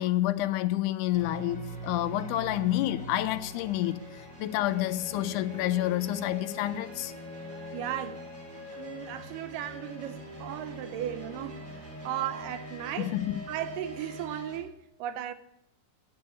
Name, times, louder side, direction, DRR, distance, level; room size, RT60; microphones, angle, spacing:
voice 1, 0.0-7.1 13.0-13.4, left 14 dB, 80° left, 2.0 m, -29 dB
sound 1, 1.1-14.6, equal, 40° right, 4.5 m, -42 dB
voice 2, 7.7-13.1 13.5-15.3, right 11 dB, 90° right, 2.4 m, -36 dB
11.5 x 7.1 x 6.9 m
omnidirectional pair, 3.8 m